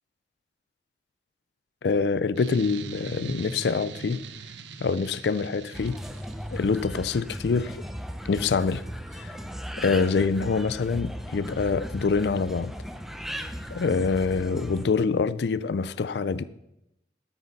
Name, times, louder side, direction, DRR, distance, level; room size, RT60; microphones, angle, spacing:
voice 1, 1.8-4.2 4.8-6.0 6.5-7.8 8.2-8.8 9.1-9.4 9.8-12.7 13.7-16.4, left 4 dB, 70° left, 0.4 m, -25 dB
sound 1, 2.4-6.8, right 5 dB, 85° right, 0.8 m, -41 dB
sound 2, 5.7-14.9, equal, ahead, 0.6 m, -37 dB
13.0 x 9.7 x 4.1 m
head